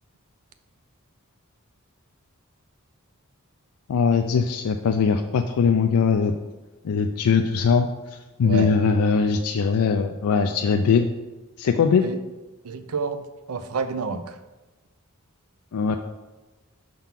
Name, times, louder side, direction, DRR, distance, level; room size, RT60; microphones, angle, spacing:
voice 1, 3.9-6.4 6.8-7.9 8.4-11.1 11.6-12.0 15.7-16.0, left 5 dB, 85° left, 6 dB, 0.4 m, -21 dB
voice 2, 12.6-14.4, right 4 dB, 75° right, 10 dB, 0.5 m, -29 dB
5.8 x 3.7 x 5.7 m, 1.1 s
head